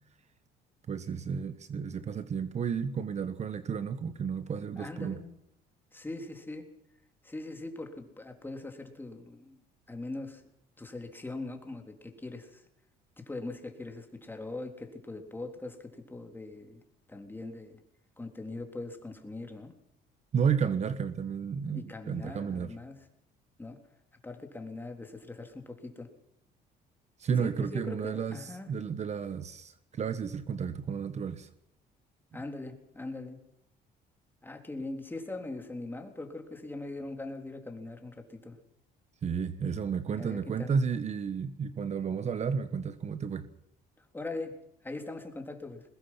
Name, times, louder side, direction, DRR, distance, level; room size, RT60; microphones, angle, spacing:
voice 1, 0.9-5.2 20.3-22.7 27.2-31.5 39.2-43.5, right 6 dB, 40° right, 12 dB, 1.3 m, -32 dB
voice 2, 4.8-5.4 5.9-6.7 7.2-9.6 9.9-10.4 10.8-12.6 13.2-16.8 17.1-17.8 18.2-19.7 21.7-23.0 23.6-23.8 24.2-26.1 27.4-28.7 32.3-33.4 34.4-38.6 40.1-40.8 44.0-44.6 44.8-45.8, left 2 dB, 10° left, 5 dB, 3.6 m, -41 dB
22.0 x 20.0 x 5.9 m, 0.80 s
cardioid pair, 110°, 17 cm